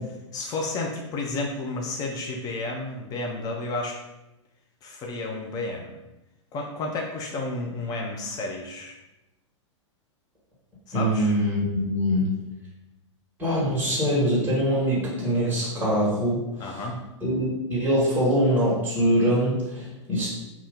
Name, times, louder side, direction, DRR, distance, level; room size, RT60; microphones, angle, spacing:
voice 1, 0.3-4.0 4.8-6.0 6.5-9.0 10.9-11.3 16.6-17.0, left 2 dB, 25° left, 1 dB, 0.4 m, -31 dB
voice 2, 10.9-12.3 13.4-16.7 17.2-20.3, equal, 10° right, -7 dB, 1.3 m, -23 dB
2.6 x 2.3 x 3.5 m, 0.98 s
figure-of-eight pair, 105°, 16 cm